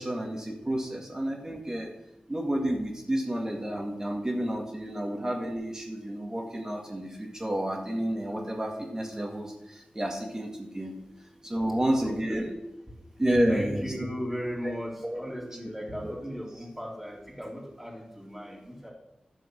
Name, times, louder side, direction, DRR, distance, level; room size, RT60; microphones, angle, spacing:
voice 1, 0.0-1.9 2.3-10.9 11.4-12.5 13.2-13.8 14.6-14.7 15.0-15.2 16.0-16.1, right 1 dB, 20° right, -1 dB, 2.1 m, -30 dB
voice 2, 11.9-12.4 13.5-18.9, equal, 5° right, -2 dB, 3.3 m, -37 dB
12.0 x 7.0 x 6.4 m, 0.85 s
wide cardioid pair, 100°, 3 cm